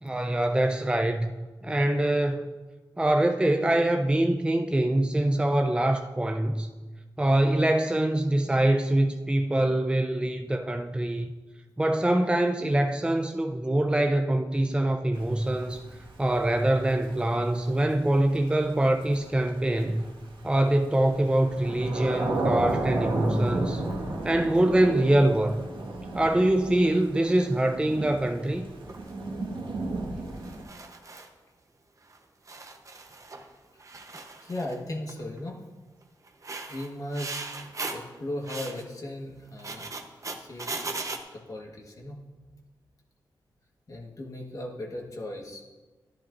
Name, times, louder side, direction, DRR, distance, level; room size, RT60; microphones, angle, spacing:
voice 1, 0.0-2.5 3.0-6.7 7.2-11.3 11.8-15.8 16.2-20.0 20.4-23.8 24.2-25.6 26.1-28.7, right 1 dB, 10° right, 5 dB, 0.5 m, -24 dB
Thunder / Rain, 15.1-30.6, right 2 dB, 75° right, 1.6 m, -33 dB
sound 1, 28.9-29.1 30.4-31.3 32.1-32.2 32.5-33.5 33.8-34.8 35.1-35.4 36.3-38.1 38.4-38.8 39.5-41.2, right 3 dB, 40° right, 0.9 m, -38 dB
voice 2, 34.4-35.6 36.7-39.9 40.3-40.7 41.3-42.2 43.9-45.7, left 1 dB, 45° left, -1 dB, 1.4 m, -37 dB
11.0 x 10.5 x 2.6 m, 1.3 s
cardioid pair, 65°, 8 cm